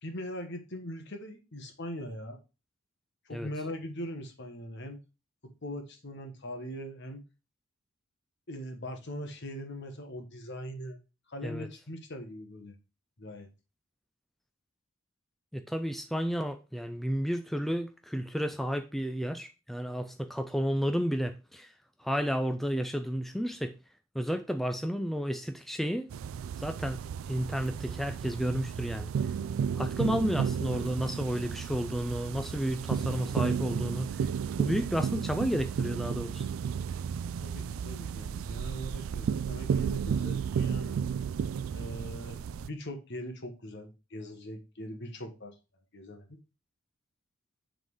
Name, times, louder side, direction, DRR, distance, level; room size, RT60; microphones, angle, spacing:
voice 1, 0.0-2.4 3.3-5.0 5.4-7.2 8.5-11.0 11.3-12.8 13.2-13.5 37.4-41.0 41.7-45.5 45.9-46.4, equal, 55° left, 1.3 m, -41 dB
voice 2, 15.5-21.7 22.0-23.8 24.1-26.1 26.6-27.0 27.3-29.1 29.8-34.3 34.6-36.5, equal, ahead, 0.4 m, -32 dB
sound 1, 26.1-42.7, right 7 dB, 75° right, 0.3 m, -33 dB
7.5 x 3.9 x 4.8 m
head